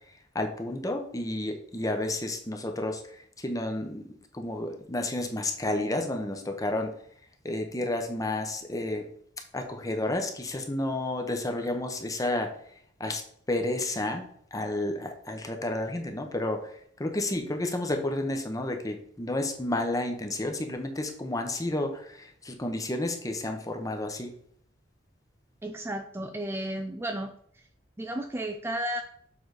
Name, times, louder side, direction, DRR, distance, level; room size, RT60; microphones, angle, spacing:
voice 1, 0.3-3.0 3.4-4.1 4.3-6.9 7.4-9.1 9.5-12.5 13.0-13.2 13.5-14.3 14.5-16.6 17.0-24.3, left 1 dB, 20° left, 4 dB, 0.9 m, -31 dB
voice 2, 25.6-27.3 28.0-29.0, right 1 dB, 15° right, 5 dB, 0.4 m, -33 dB
7.1 x 3.9 x 4.9 m, 0.64 s
head